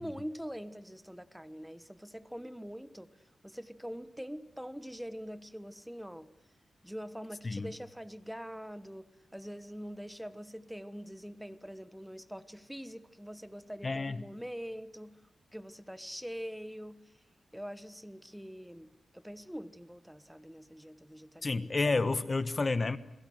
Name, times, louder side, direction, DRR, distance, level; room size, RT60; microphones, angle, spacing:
voice 1, 0.0-6.3 6.8-17.2 17.5-21.6, equal, ahead, 14 dB, 1.2 m, -44 dB
voice 2, 13.8-14.2 21.4-23.0, left 3 dB, 35° left, 14 dB, 1.1 m, -30 dB
28.5 x 21.5 x 7.9 m, 0.84 s
cardioid pair, 85°, 0 cm